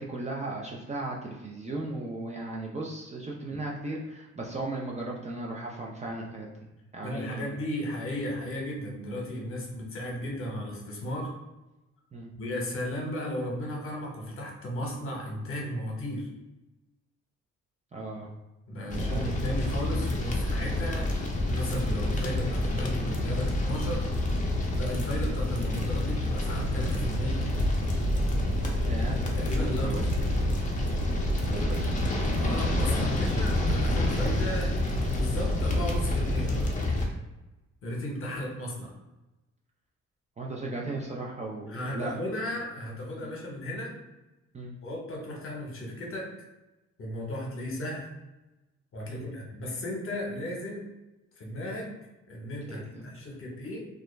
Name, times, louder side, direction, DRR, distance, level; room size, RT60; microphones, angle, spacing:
voice 1, 0.0-6.5 6.9-7.5 12.1-12.3 17.9-18.3 18.7-19.3 28.8-29.2 29.8-30.1 31.4-31.9 32.9-33.2 40.4-42.1 43.2-43.3 44.5-44.8 49.1-49.3 52.7-53.1, right 2 dB, 25° right, -3 dB, 0.4 m, -36 dB
voice 2, 7.0-11.4 12.3-16.3 18.7-24.1 24.8-27.4 29.4-30.3 32.4-34.8 35.1-36.7 37.8-38.9 41.7-44.0 44.8-46.3 47.0-48.1 48.9-50.9 51.4-51.9 52.3-53.9, equal, 45° left, -1 dB, 0.9 m, -35 dB
sound 1, 18.9-37.1, left 1 dB, 25° left, 0.5 m, -28 dB
sound 2, 26.5-36.6, right 1 dB, 75° right, 0.6 m, -34 dB
2.3 x 2.0 x 3.1 m, 1.0 s
cardioid pair, 90°, 30 cm